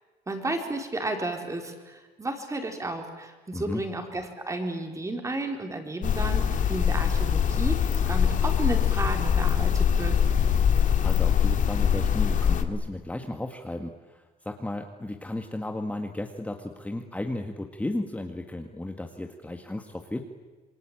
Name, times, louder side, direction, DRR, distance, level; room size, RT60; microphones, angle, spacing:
voice 1, 0.3-10.2, right 2 dB, 20° right, 4 dB, 4.4 m, -33 dB
sound 1, 6.0-12.6, left 8 dB, 50° left, 2.2 m, -23 dB
voice 2, 11.0-20.2, left 1 dB, 10° left, 4 dB, 1.8 m, -34 dB
27.5 x 22.0 x 9.1 m, 1.3 s
cardioid pair, 110°, 17 cm